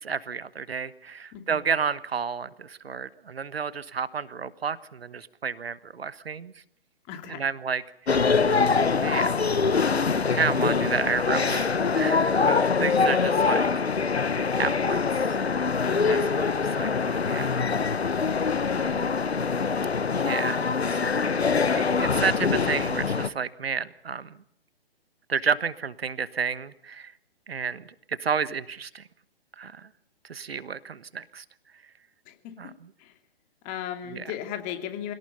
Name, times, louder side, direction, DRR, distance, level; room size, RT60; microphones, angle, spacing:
voice 1, 0.0-6.5 7.3-7.8 9.0-9.3 10.3-13.7 14.5-15.4 16.1-17.6 18.8-18.9 20.2-21.4 21.7-24.4 25.3-27.1 27.5-29.0 29.6-29.9 30.3-31.4 32.6-32.7 34.1-34.2, right 6 dB, 70° right, 17 dB, 1.3 m, -31 dB
voice 2, 7.1-7.5 15.8-16.3 18.3-18.9 32.3-32.7 33.0-33.1 33.6-35.1, left 10 dB, 25° left, 7 dB, 2.7 m, -37 dB
sound 1, 8.1-23.3, left 5 dB, 85° left, 1.2 m, -24 dB
25.5 x 18.0 x 6.9 m, 0.70 s
figure-of-eight pair, 130°, 31 cm